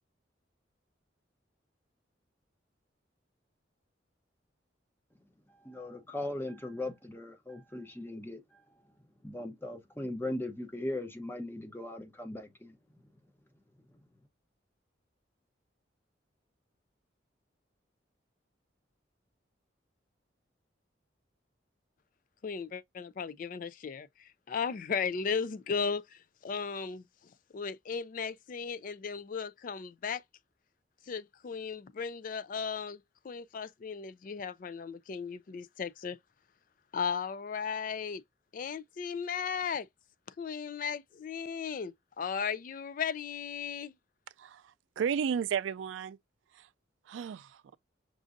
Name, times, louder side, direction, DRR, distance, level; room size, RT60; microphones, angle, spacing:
voice 1, 5.5-8.6 9.2-12.8, left 1 dB, 10° left, 0.8 m, -39 dB
voice 2, 22.4-27.0 27.5-30.2 31.1-36.2 36.9-38.2 38.5-39.9 40.4-43.9, left 6 dB, 45° left, 0.3 m, -36 dB
voice 3, 44.4-46.2 46.5-46.7 47.1-47.8, right 7 dB, 80° right, 0.3 m, -34 dB
6.0 x 2.6 x 2.5 m
head